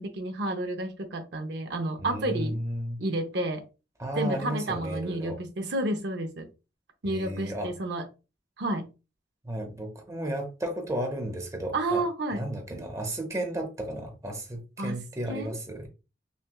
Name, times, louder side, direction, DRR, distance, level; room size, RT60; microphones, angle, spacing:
voice 1, 0.0-2.6 3.0-3.6 4.2-6.5 7.0-8.1 8.6-8.9 11.7-12.4 14.8-15.0 15.3-15.5, right 1 dB, 70° right, 0.7 m, -30 dB
voice 2, 2.0-3.0 4.0-5.4 7.0-7.7 9.4-12.0 12.3-15.9, right 1 dB, 20° right, 0.8 m, -33 dB
5.8 x 2.3 x 2.2 m
head